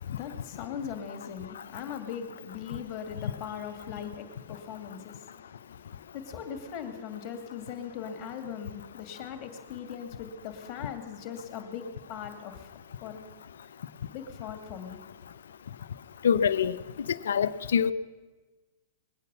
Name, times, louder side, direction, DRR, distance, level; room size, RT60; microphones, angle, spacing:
voice 1, 0.0-12.7 13.0-13.2 14.1-15.0, left 8 dB, 45° left, 2.2 m, -40 dB
voice 2, 16.2-16.8 17.1-17.9, left 7 dB, 80° left, 0.6 m, -25 dB
21.0 x 9.2 x 6.9 m
hypercardioid pair, 125°, 0 cm